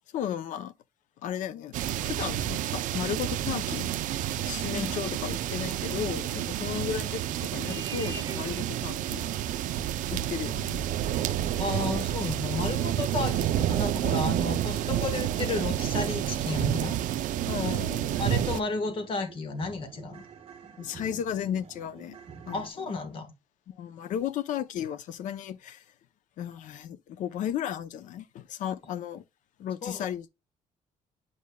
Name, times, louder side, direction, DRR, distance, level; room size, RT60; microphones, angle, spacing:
voice 1, 0.1-0.7 1.2-4.1 4.4-9.2 10.1-10.8 17.5-18.2 20.8-22.2 22.5-22.7 23.7-25.8 26.4-29.2 29.6-30.3, left 9 dB, 70° left, 0.6 m, -34 dB
sound 1, 1.7-18.6, right 12 dB, 75° right, 0.5 m, -29 dB
Vehicle horn car horn honking, 6.7-15.1, right 4 dB, 30° right, 1.1 m, -48 dB
voice 2, 11.6-17.0 18.2-20.2 22.5-23.3 29.8-30.0, left 3 dB, 40° left, 1.3 m, -33 dB
sound 2, 13.6-22.7, right 6 dB, 45° right, 1.3 m, -48 dB
8.5 x 5.2 x 2.2 m
cardioid pair, 160°, 13 cm